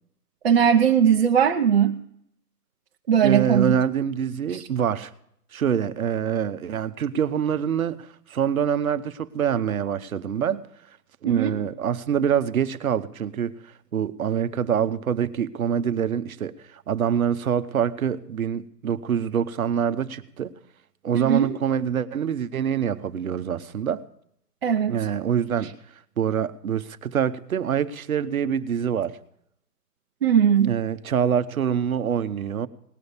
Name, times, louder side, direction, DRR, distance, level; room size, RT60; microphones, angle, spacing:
voice 1, 0.4-2.0 3.1-3.8 4.5-4.7 11.2-11.6 21.1-21.6 24.6-24.9 30.2-30.8, right 8 dB, 40° right, 2 dB, 0.7 m, -19 dB
voice 2, 3.2-5.1 5.5-10.6 11.2-13.5 13.9-20.5 21.0-24.0 24.9-25.7 26.2-29.2 30.6-32.7, right 8 dB, 60° right, 12 dB, 1.0 m, -25 dB
19.0 x 6.4 x 7.1 m, 0.73 s
hypercardioid pair, 145°, 47 cm